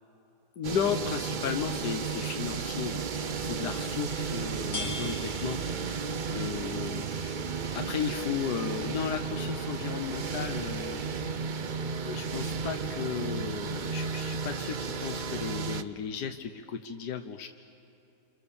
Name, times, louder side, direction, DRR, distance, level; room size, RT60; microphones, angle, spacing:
voice 1, 0.6-11.0 11.6-17.5, left 7 dB, 80° left, 6 dB, 1.5 m, -35 dB
sound 1, 0.6-15.8, right 5 dB, 50° right, 0.5 m, -33 dB
sound 2, 3.8-15.2, left 2 dB, 45° left, 4.3 m, -48 dB
29.5 x 26.5 x 7.1 m, 2.9 s
omnidirectional pair, 1.7 m